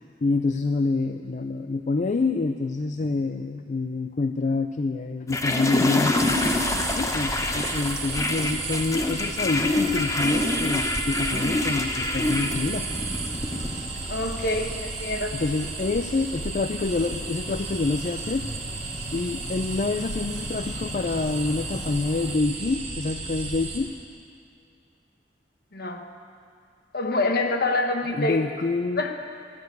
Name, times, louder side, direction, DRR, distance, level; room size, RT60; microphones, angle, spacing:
voice 1, 0.2-6.4 7.0-12.9 15.3-18.4 19.1-23.9 28.2-29.0, left 3 dB, 45° left, 8 dB, 0.4 m, -27 dB
sound 1, 5.3-22.4, left 2 dB, 20° left, 0.9 m, -29 dB
sound 2, 6.2-23.8, right 3 dB, 40° right, 2.6 m, -34 dB
sound 3, 7.1-15.1, right 1 dB, 10° right, 3.5 m, -49 dB
voice 2, 14.1-15.3 25.7-26.0 26.9-28.5 29.0-29.1, left 2 dB, 60° left, 4 dB, 1.3 m, -26 dB
13.0 x 12.0 x 8.2 m, 2.3 s
head